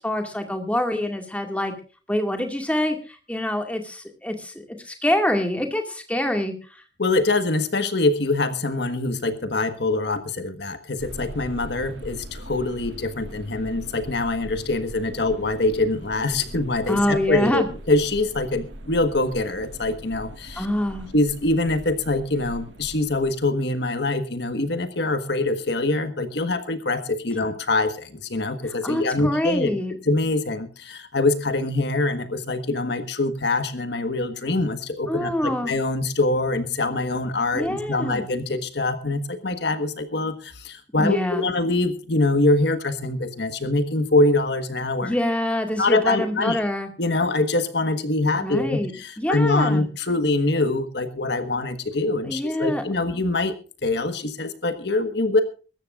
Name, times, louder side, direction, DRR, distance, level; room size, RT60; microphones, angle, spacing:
voice 1, 0.0-1.7 2.1-4.5 4.8-6.8 16.9-17.7 20.6-21.1 28.6-29.9 35.1-35.7 37.5-38.2 41.0-41.5 45.0-46.9 48.3-48.9 49.2-49.9 52.2-53.2, left 1 dB, 5° left, 4 dB, 2.1 m, -25 dB
voice 2, 7.0-20.7 21.1-29.7 30.1-45.1 45.8-46.6 47.0-53.5 53.8-55.4, left 2 dB, 60° left, 9 dB, 1.4 m, -24 dB
sound 1, 11.0-23.6, equal, 70° right, 1.9 m, -41 dB
24.0 x 13.5 x 2.5 m, 0.36 s
head